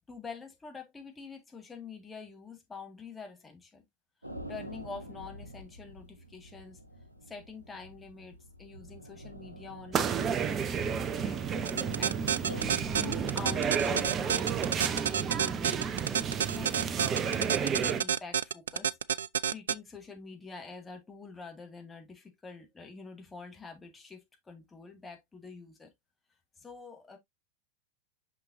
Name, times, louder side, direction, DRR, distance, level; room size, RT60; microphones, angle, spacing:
voice 1, 0.1-3.8 4.5-6.8 7.2-11.4 12.0-18.9 19.5-25.9 26.6-27.2, left 4 dB, 10° left, 2.1 m, -46 dB
sound 1, 4.2-14.0, right 1 dB, 85° right, 1.2 m, -46 dB
sound 2, 9.9-18.0, right 7 dB, 25° right, 0.7 m, -31 dB
sound 3, 11.7-19.7, right 8 dB, 65° right, 0.3 m, -28 dB
6.0 x 5.9 x 2.6 m
figure-of-eight pair, 90°, 0 cm